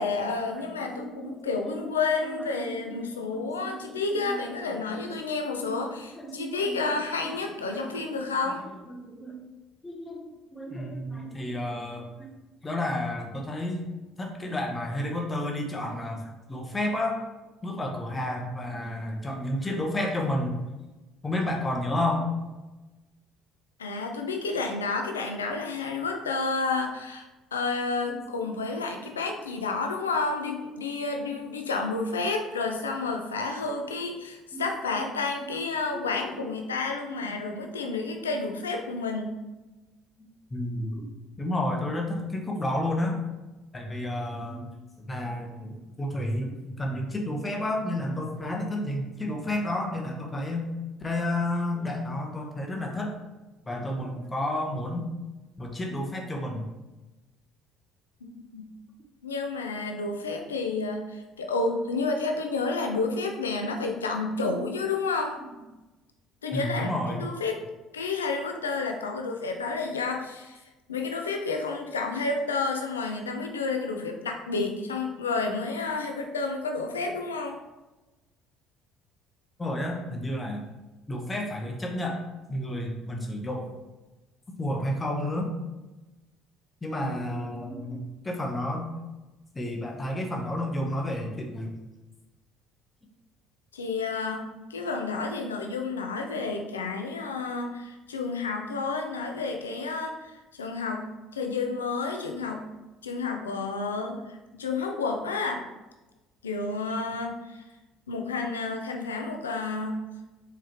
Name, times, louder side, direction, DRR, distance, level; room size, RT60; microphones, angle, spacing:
voice 1, 0.0-8.6 23.8-39.4 58.2-58.7 59.2-65.4 66.4-66.9 67.2-67.7 67.9-70.6 70.9-77.6 93.7-94.4 94.7-102.6 103.0-105.6 106.4-107.6 108.1-110.0, left 3 dB, 90° left, 3 dB, 0.5 m, -30 dB
voice 2, 0.5-1.8 2.2-2.3 2.6-4.4 4.9-5.1 5.6-5.9 6.2-8.3 8.9-9.5 9.8-12.3 12.6-13.8 14.2-17.2 17.6-20.6 21.2-22.3 28.1-28.2 28.4-28.5 34.5-34.6 35.0-35.1 35.4-35.6 35.9-36.5 37.1-37.3 40.2-41.1 41.4-43.2 43.7-44.7 45.0-50.7 51.0-53.1 53.6-55.1 55.6-56.6 64.4-64.7 66.5-67.3 79.6-80.6 81.1-82.2 82.5-83.7 84.6-85.5 86.8-88.9 89.5-91.7, left 1 dB, 20° left, 1 dB, 0.9 m, -31 dB
4.8 x 3.4 x 3.0 m, 1.1 s
hypercardioid pair, 60°, 0 cm